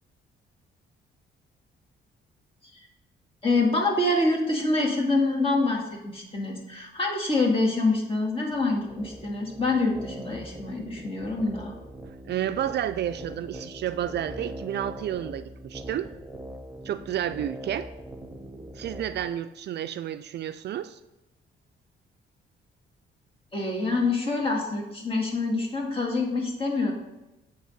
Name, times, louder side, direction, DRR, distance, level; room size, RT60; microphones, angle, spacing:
voice 1, 3.4-11.7 23.5-26.9, left 2 dB, 30° left, -1 dB, 1.9 m, -26 dB
sound 1, 8.5-19.3, right 1 dB, 10° right, 0.8 m, -42 dB
voice 2, 12.1-16.1 16.8-17.9 18.7-21.0, right 10 dB, 60° right, 11 dB, 0.4 m, -31 dB
8.7 x 3.5 x 5.3 m, 0.96 s
cardioid pair, 90°, 20 cm